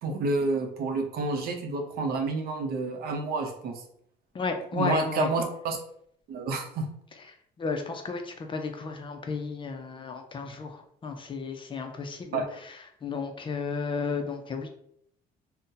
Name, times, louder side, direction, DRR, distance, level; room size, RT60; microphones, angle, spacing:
voice 1, 0.0-3.8 4.7-5.8 6.3-6.9 12.3-12.5, right 3 dB, 65° right, 4 dB, 0.7 m, -29 dB
voice 2, 4.3-5.3 7.6-14.7, left 4 dB, 30° left, 5 dB, 0.5 m, -33 dB
2.6 x 2.1 x 3.8 m, 0.68 s
cardioid pair, 110°, 17 cm